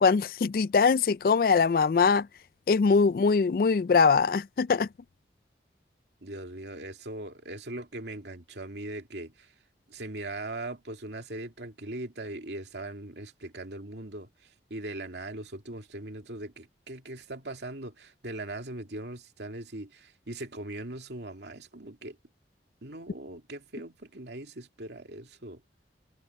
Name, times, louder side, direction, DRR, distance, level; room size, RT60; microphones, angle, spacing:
voice 1, 0.0-2.3 2.7-4.9, left 5 dB, 55° left, 0.3 m, -22 dB
voice 2, 6.2-9.5 9.9-22.2 22.8-25.6, right 2 dB, 75° right, 2.5 m, -40 dB
head